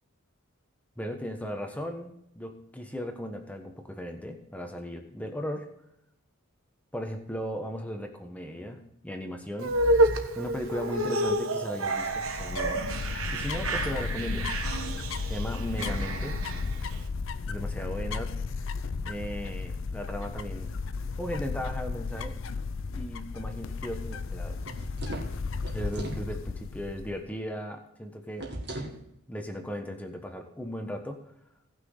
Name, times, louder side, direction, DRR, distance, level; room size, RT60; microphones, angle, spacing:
voice 1, 1.0-5.7 6.9-9.8 10.3-12.8 13.3-14.5 15.3-16.4 17.5-18.7 19.0-20.8 21.2-22.4 22.9-24.6 25.7-28.5 29.3-31.2, equal, 5° left, 4 dB, 1.2 m, -37 dB
sound 1, 9.6-17.0, right 1 dB, 75° right, 1.3 m, -29 dB
sound 2, 12.0-27.2, left 4 dB, 65° left, 0.5 m, -34 dB
sound 3, 24.6-26.3 28.4-29.0, right 1 dB, 50° right, 2.1 m, -38 dB
18.0 x 6.1 x 3.9 m, 0.78 s
head